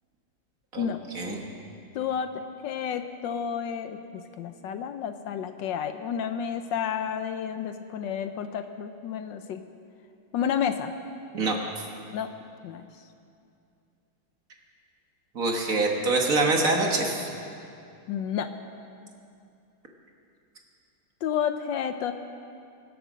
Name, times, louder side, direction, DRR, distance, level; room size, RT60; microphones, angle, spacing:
voice 1, 1.9-9.6 10.3-10.9 12.1-12.3 12.6-12.9 18.1-18.5 21.2-22.1, left 8 dB, 75° left, 9 dB, 1.2 m, -31 dB
voice 2, 15.4-17.2, right 2 dB, 45° right, 1 dB, 1.6 m, -24 dB
23.5 x 7.9 x 6.3 m, 2.5 s
omnidirectional pair, 2.2 m